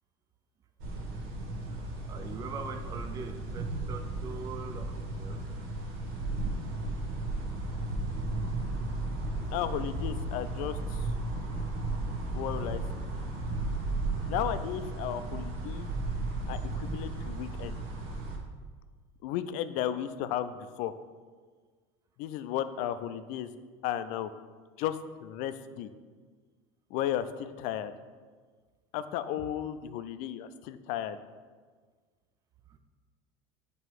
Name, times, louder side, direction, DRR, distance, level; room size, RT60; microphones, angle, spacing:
sound 1, 0.8-18.4, right 2 dB, 75° right, 1.1 m, -34 dB
voice 1, 1.7-5.4 15.3-15.4 32.7-32.8, right 5 dB, 25° right, 6 dB, 0.4 m, -43 dB
voice 2, 9.5-11.0 12.3-13.0 14.3-15.9 16.5-17.8 19.2-20.9 22.2-23.5 23.8-24.3 24.8-25.9 26.9-27.9 28.9-31.2, left 11 dB, 65° left, 12 dB, 0.4 m, -34 dB
7.5 x 3.0 x 4.5 m, 1.5 s
supercardioid pair, 125°, 14 cm